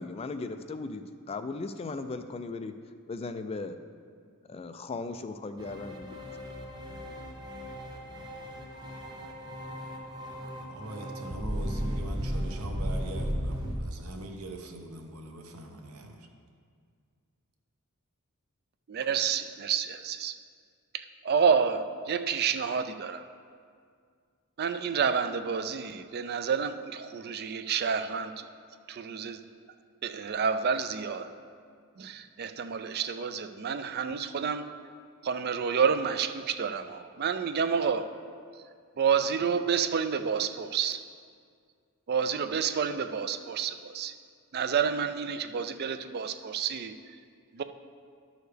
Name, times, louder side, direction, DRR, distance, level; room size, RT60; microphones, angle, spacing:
voice 1, 0.0-2.7 3.1-3.8 4.5-6.3, left 3 dB, 25° left, 9 dB, 0.3 m, -37 dB
cyberpunk retro, 5.6-13.8, equal, 20° right, 0.8 m, -35 dB
voice 2, 10.7-16.3, right 2 dB, 80° right, 3 dB, 0.9 m, -42 dB
voice 3, 18.9-20.4 20.9-23.3 24.6-28.5 28.9-29.4 30.0-31.3 32.0-34.7 35.2-38.1 39.0-41.0 42.1-44.1 44.5-46.9 47.5-47.6, right 6 dB, 45° right, 9 dB, 0.4 m, -29 dB
11.0 x 6.4 x 3.4 m, 2.1 s
head